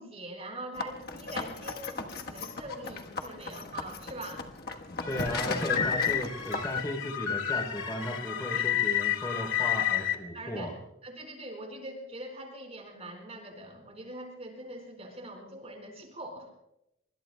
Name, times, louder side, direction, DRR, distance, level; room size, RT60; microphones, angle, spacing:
voice 1, 0.0-4.4 5.2-5.5 8.5-8.7 10.3-10.7 11.0-16.5, right 1 dB, 30° right, 2 dB, 4.7 m, -43 dB
sound 1, 0.7-6.8, left 3 dB, 50° left, 1.3 m, -37 dB
sound 2, 5.0-10.2, left 10 dB, 85° left, 2.2 m, -30 dB
voice 2, 5.0-10.7, equal, 20° left, 2 dB, 3.3 m, -35 dB
25.0 x 24.0 x 2.3 m, 0.84 s
head